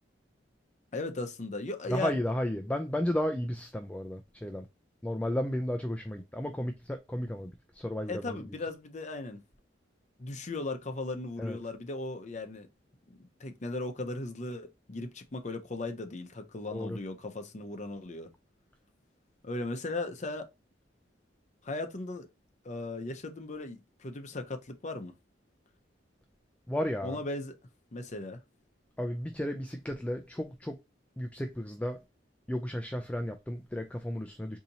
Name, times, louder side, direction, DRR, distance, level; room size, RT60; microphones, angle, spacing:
voice 1, 0.9-2.2 8.1-9.4 10.2-12.7 13.1-18.3 19.4-20.5 21.6-22.3 22.6-25.1 27.0-27.6 27.9-28.4, left 2 dB, 40° left, 0.6 m, -37 dB
voice 2, 1.9-4.7 5.0-8.4 11.4-11.6 16.7-17.0 26.7-27.2 29.0-30.8 31.2-32.0 32.5-34.6, left 1 dB, 5° left, 0.3 m, -33 dB
4.0 x 2.8 x 2.7 m
head